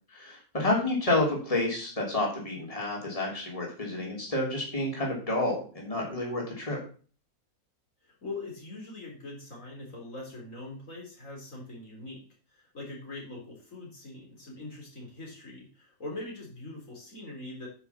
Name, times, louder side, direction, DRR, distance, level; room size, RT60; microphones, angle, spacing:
voice 1, 0.1-6.8, left 2 dB, 20° left, -2 dB, 3.3 m, -29 dB
voice 2, 8.0-12.2 12.5-17.7, left 2 dB, 55° left, -2 dB, 3.8 m, -42 dB
9.8 x 5.9 x 7.0 m, 0.40 s
omnidirectional pair, 1.6 m